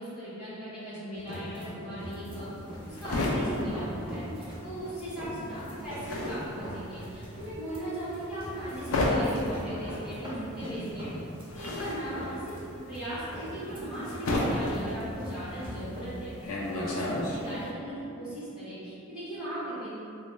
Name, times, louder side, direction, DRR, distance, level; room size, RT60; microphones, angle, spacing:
voice 1, 0.0-2.5 2.8-11.1 11.5-16.3 16.7-17.0 17.3-19.9, right 1 dB, 5° right, -16 dB, 1.0 m, -38 dB
sound 1, 1.1-16.0, equal, 25° right, 0.6 m, -42 dB
sound 2, 2.3-4.8 5.1-17.7, left 1 dB, 85° left, 0.5 m, -32 dB
3.0 x 2.3 x 3.1 m, 2.7 s
head